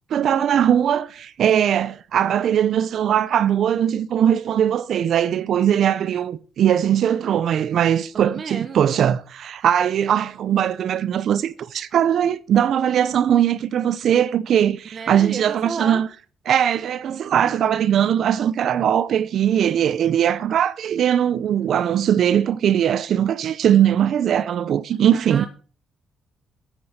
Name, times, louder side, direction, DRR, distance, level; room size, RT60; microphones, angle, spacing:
voice 1, 0.1-16.1 16.5-25.5, right 9 dB, 65° right, 0.7 m, -20 dB
voice 2, 8.1-8.9 14.8-16.0 25.1-25.5, right 5 dB, 45° right, 1.6 m, -32 dB
9.7 x 9.0 x 7.9 m
cardioid pair, 90°, 0 cm